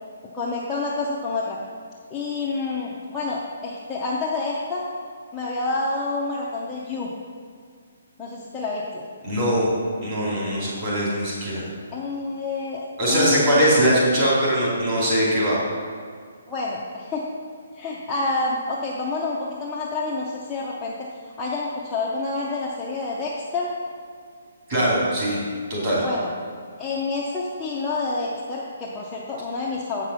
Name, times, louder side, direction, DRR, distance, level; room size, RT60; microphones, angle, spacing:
voice 1, 0.3-1.6 2.1-4.9 5.3-7.1 8.2-9.0 11.9-13.6 16.5-17.3 17.7-23.7 26.0-26.3 26.8-30.0, left 3 dB, 5° left, -7 dB, 0.5 m, -28 dB
voice 2, 9.2-9.7 10.0-11.7 13.0-15.6 24.7-25.4 25.7-26.0, equal, 25° right, -7 dB, 2.6 m, -21 dB
8.1 x 5.7 x 6.2 m, 2.1 s
hypercardioid pair, 180°, 0 cm